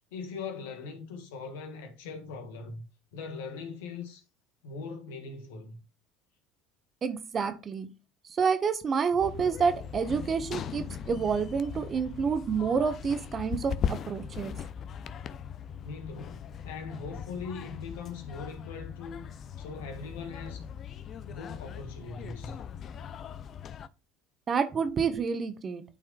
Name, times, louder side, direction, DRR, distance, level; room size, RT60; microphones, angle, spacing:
voice 1, 0.1-2.8 3.1-4.2 4.6-5.8 15.8-19.2 19.6-20.7 21.3-22.6, left 4 dB, 80° left, 1.6 m, -40 dB
voice 2, 7.0-7.9 8.3-14.6 24.5-25.8, right 6 dB, 40° right, 1.2 m, -28 dB
sound 1, 9.2-23.9, left 8 dB, 50° left, 0.6 m, -39 dB
12.0 x 4.2 x 2.4 m
hypercardioid pair, 75°, 0 cm